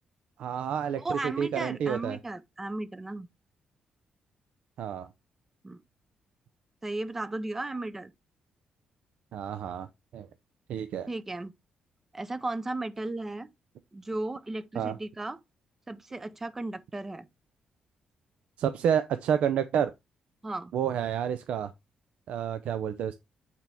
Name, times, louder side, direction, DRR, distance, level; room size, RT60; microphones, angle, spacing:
voice 1, 0.4-2.2 4.8-5.1 9.3-9.9 10.1-10.3 10.7-11.1 14.7-15.0 18.6-19.9 20.7-21.7 22.3-23.1, right 8 dB, 75° right, 0.5 m, -29 dB
voice 2, 1.0-3.3 5.6-5.8 6.8-8.1 11.1-11.5 12.1-13.5 13.9-15.4 15.9-17.3 20.4-20.7, right 2 dB, 15° right, 0.5 m, -35 dB
8.3 x 4.4 x 3.4 m
cardioid pair, 165°, 2 cm